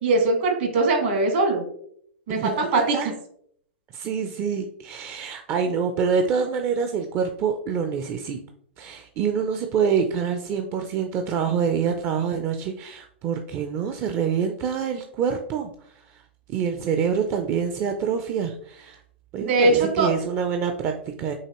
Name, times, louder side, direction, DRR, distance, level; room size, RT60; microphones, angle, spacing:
voice 1, 0.0-1.6 2.3-3.1 19.4-20.1, right 2 dB, 65° right, 2 dB, 1.7 m, -21 dB
voice 2, 3.9-8.4 8.8-15.7 16.1-16.2 16.5-19.0 19.3-21.3, right 6 dB, 35° right, 5 dB, 0.4 m, -26 dB
5.6 x 3.0 x 3.0 m, 0.66 s
hypercardioid pair, 110°, 6 cm